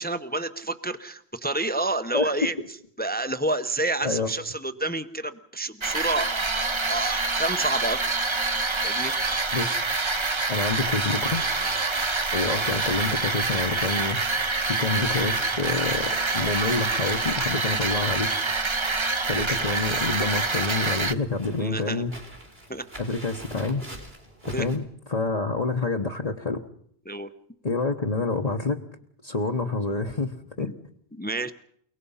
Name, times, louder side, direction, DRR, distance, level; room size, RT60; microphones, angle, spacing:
voice 1, 0.0-8.3 8.8-9.1 21.6-22.0 22.7-22.9 24.5-24.7 27.1-27.3 30.6-30.8 31.1-31.5, right 2 dB, 10° left, 10 dB, 0.8 m, -29 dB
sound 1, 5.8-21.1, right 3 dB, 30° right, 1.0 m, -26 dB
voice 2, 10.5-11.4 12.3-18.3 19.0-22.1 23.0-23.8 24.4-24.8 25.1-26.6 27.6-28.8 29.2-30.7, left 3 dB, 40° left, 2 dB, 1.2 m, -28 dB
sound 2, 11.0-24.8, right 1 dB, 70° right, 5.0 m, -44 dB
30.0 x 18.0 x 5.6 m, 0.65 s
omnidirectional pair, 1.0 m